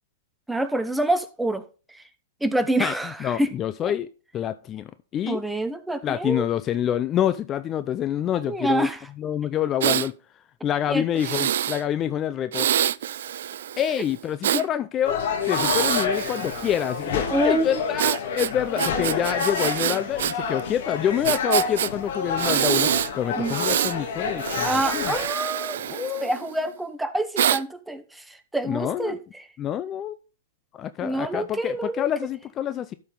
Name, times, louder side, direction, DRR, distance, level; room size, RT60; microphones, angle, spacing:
voice 1, 0.5-2.0 2.4-3.5 3.8-3.9 5.3-6.4 8.5-9.0 10.9-11.0 14.5-14.6 17.3-17.8 23.4-23.6 24.6-25.8 26.2-29.5 31.0-32.3, right 1 dB, 5° right, 0.9 m, -27 dB
voice 2, 3.2-4.1 4.3-5.4 6.0-8.9 9.2-10.1 10.6-12.7 13.8-15.2 15.5-22.9 23.1-25.1 25.8-26.3 28.7-29.1 29.6-30.2 30.8-32.9, left 10 dB, 30° left, 0.5 m, -27 dB
Breathing, 9.8-10.1 11.2-11.8 12.5-14.6 15.4-17.0 18.0-20.3 20.6-20.7 21.2-21.9 22.4-23.1 23.4-23.9 24.4-26.6 27.4-27.6, right 11 dB, 70° right, 0.4 m, -26 dB
sound 1, 15.0-25.3, left 5 dB, 60° left, 2.4 m, -28 dB
12.5 x 5.4 x 3.9 m
hypercardioid pair, 120°, 0 cm